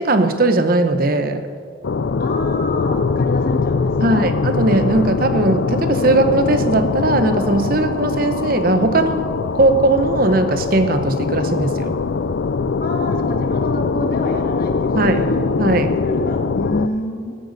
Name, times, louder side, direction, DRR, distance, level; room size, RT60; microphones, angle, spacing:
voice 1, 0.0-1.5 4.0-9.3 9.5-11.9 14.9-15.2 15.6-16.0, right 2 dB, 50° right, 9 dB, 0.8 m, -18 dB
sound 1, 1.8-16.9, left 4 dB, 70° left, 0.4 m, -22 dB
voice 2, 2.2-4.2 12.8-15.4 16.0-17.4, equal, 50° left, 1 dB, 2.1 m, -27 dB
19.0 x 14.0 x 4.1 m, 2.2 s
head